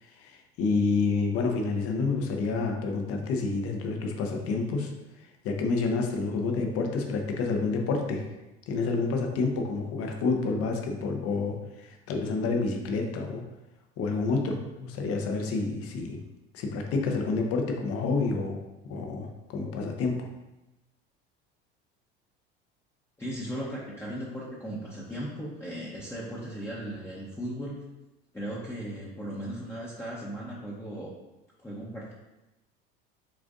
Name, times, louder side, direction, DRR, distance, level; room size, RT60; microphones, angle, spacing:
voice 1, 0.0-4.9 5.2-8.2 8.7-13.4 14.0-16.2 16.5-18.6 18.9-20.3, left 4 dB, 55° left, 2 dB, 0.9 m, -29 dB
voice 2, 23.2-27.8 28.3-31.1 31.6-32.1, right 1 dB, 10° left, -6 dB, 0.9 m, -37 dB
7.4 x 2.5 x 2.5 m, 1.0 s
hypercardioid pair, 75°, 29 cm